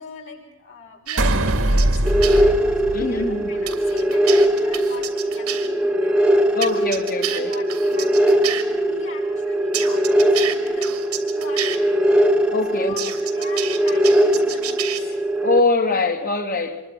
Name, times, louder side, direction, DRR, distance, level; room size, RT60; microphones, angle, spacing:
voice 1, 0.0-2.6 2.8-6.2 7.1-11.8 12.7-15.2, left 3 dB, 60° left, 6.7 m, -41 dB
sound 1, 1.1-2.4 3.7-5.7 6.6-8.6 9.7-11.8 13.0-15.0, right 10 dB, 90° right, 3.2 m, -29 dB
sound 2, 1.2-3.7, right 1 dB, 65° right, 2.1 m, -21 dB
sound 3, 2.0-15.6, right 1 dB, 5° right, 1.7 m, -20 dB
voice 2, 2.9-3.5 6.5-7.5 12.5-12.9 15.4-16.8, left 3 dB, 40° left, 2.6 m, -22 dB
26.5 x 23.0 x 6.1 m
head